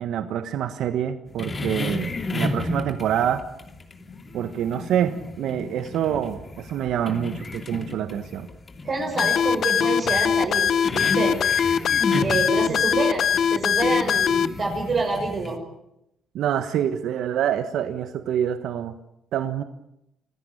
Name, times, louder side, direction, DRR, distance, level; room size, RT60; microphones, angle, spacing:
voice 1, 0.0-3.5 4.3-8.5 12.7-12.8 16.3-19.0 19.3-19.6, right 10 dB, 75° right, 9 dB, 1.4 m, -26 dB
sound 1, 1.3-15.6, left 2 dB, 30° left, 2.9 m, -33 dB
voice 2, 8.8-11.4 12.2-15.6, right 3 dB, 45° right, 0 dB, 6.2 m, -27 dB
sound 2, 9.2-14.5, left 8 dB, 60° left, 0.9 m, -21 dB
25.5 x 16.0 x 9.9 m, 0.84 s
cardioid pair, 100°, 0 cm